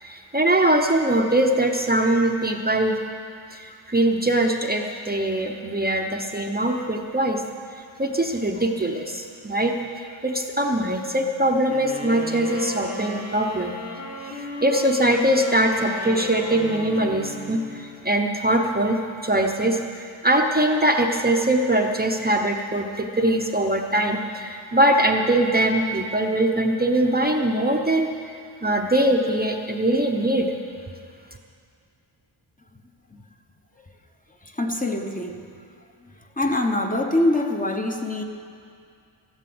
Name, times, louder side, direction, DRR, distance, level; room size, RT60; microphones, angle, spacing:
voice 1, 0.0-3.0 3.5-7.4 8.0-13.7 14.6-28.1 28.6-30.5, right 1 dB, 20° right, 2 dB, 0.8 m, -22 dB
sound 1, 11.7-18.1, left 1 dB, 85° left, 2.0 m, -35 dB
voice 2, 34.4-35.5 36.4-38.2, left 1 dB, 15° left, 3 dB, 1.0 m, -24 dB
13.5 x 11.5 x 7.8 m, 2.3 s
wide cardioid pair, 120°, 49 cm